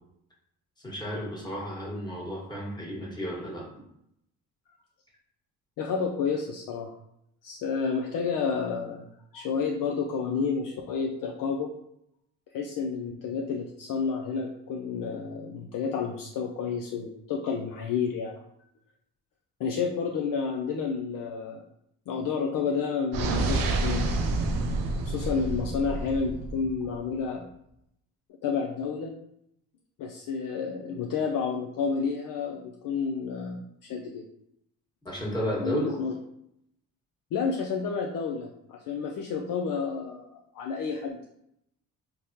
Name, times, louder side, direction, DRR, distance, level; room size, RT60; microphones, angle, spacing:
voice 1, 0.8-3.6 35.0-36.0, equal, 10° left, -4 dB, 1.4 m, -32 dB
voice 2, 5.8-6.9 7.4-9.0 9.3-11.7 12.5-18.4 19.6-21.6 22.1-24.1 25.0-27.5 28.4-29.1 30.0-34.2 35.6-36.1 37.3-41.3, left 5 dB, 60° left, 0 dB, 0.5 m, -30 dB
sound 1, 23.1-27.0, right 2 dB, 60° right, 0.5 m, -28 dB
3.3 x 2.1 x 2.7 m, 0.76 s
supercardioid pair, 60°, 38 cm